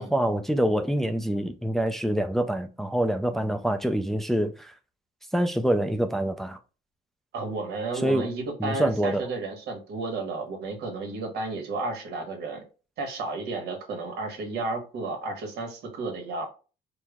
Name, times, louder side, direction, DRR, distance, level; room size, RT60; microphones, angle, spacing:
voice 1, 0.0-4.7 5.3-6.6 7.9-8.3 8.6-9.2, right 1 dB, ahead, 0.4 m, -26 dB
voice 2, 7.3-12.6 13.0-16.5, right 3 dB, 75° right, 1.2 m, -32 dB
4.5 x 2.1 x 3.5 m
cardioid pair, 110°, 17 cm